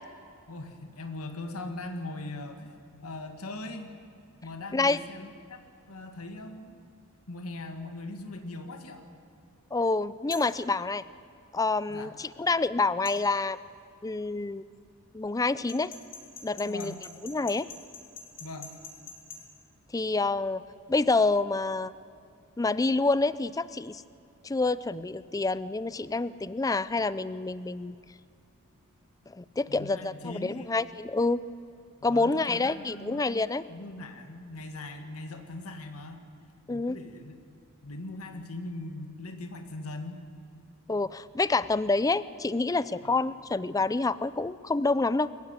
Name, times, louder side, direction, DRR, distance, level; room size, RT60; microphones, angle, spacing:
voice 1, 0.5-2.7 3.0-3.9 4.4-5.6 5.9-6.8 7.3-9.0 11.9-12.2 16.6-17.1 18.4-18.8 29.7-30.8 32.1-36.3 36.7-37.3 37.8-40.3 43.0-43.2, left 2 dB, 90° left, 6 dB, 1.8 m, -40 dB
voice 2, 9.7-11.0 11.5-13.6 14.0-14.6 15.1-15.9 16.4-16.9 17.2-17.7 19.9-20.6 20.9-21.9 22.6-24.0 24.4-28.0 29.3-31.4 32.0-33.6 36.7-37.0 40.9-45.3, left 3 dB, 15° left, 17 dB, 0.4 m, -27 dB
sound 1, 10.3-10.6 13.1-13.2 15.7-19.4, left 5 dB, 40° left, 4.0 m, -44 dB
22.5 x 15.0 x 9.5 m, 2.4 s
head